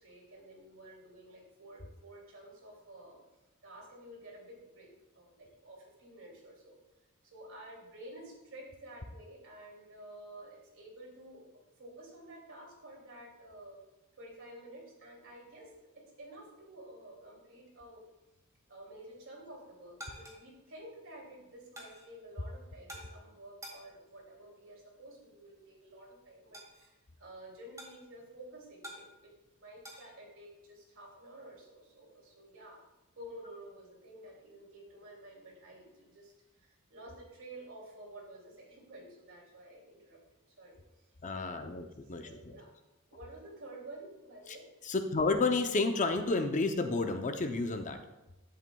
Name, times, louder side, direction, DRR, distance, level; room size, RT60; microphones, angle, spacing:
voice 1, 0.0-3.2 3.6-4.9 5.1-6.8 7.2-11.4 11.8-13.8 14.1-18.0 18.7-29.3 29.6-32.8 33.2-40.2 40.5-41.0 41.3-41.7 42.2-42.7 43.1-44.7, right 1 dB, 65° right, -3 dB, 2.7 m, -51 dB
sound 1, 19.4-30.1, equal, 15° right, 1.9 m, -53 dB
voice 2, 41.2-42.5 44.8-48.0, left 3 dB, 35° left, 7 dB, 0.6 m, -31 dB
10.5 x 7.8 x 2.3 m, 0.99 s
head